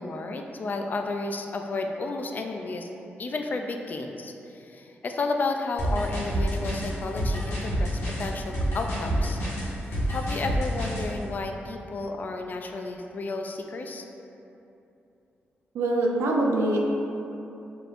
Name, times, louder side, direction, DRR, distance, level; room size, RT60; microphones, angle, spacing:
voice 1, 0.0-2.9 3.2-9.4 9.8-14.0, left 3 dB, 45° left, 4 dB, 0.3 m, -32 dB
sound 1, 5.8-11.1, equal, 80° left, 1.0 m, -28 dB
voice 2, 15.7-16.8, right 2 dB, 85° right, -1 dB, 0.5 m, -24 dB
4.9 x 2.9 x 2.5 m, 2.9 s
cardioid pair, 95°, 4 cm